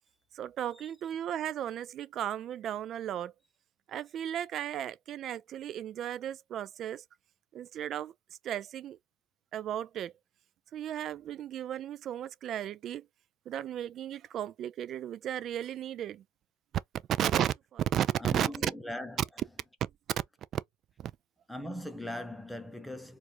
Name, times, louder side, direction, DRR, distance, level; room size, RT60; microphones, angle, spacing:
voice 1, 0.3-3.3 3.9-7.0 7.5-8.1 8.4-9.0 9.5-10.1 10.7-13.1 13.5-16.2 17.1-18.7 19.8-19.9 20.5-20.6 21.0-21.1, right 10 dB, 35° right, 0.3 m, -34 dB
voice 2, 18.2-19.2 21.5-23.2, left 1 dB, ahead, 0.7 m, -39 dB
4.5 x 2.5 x 2.7 m
supercardioid pair, 120°, 0 cm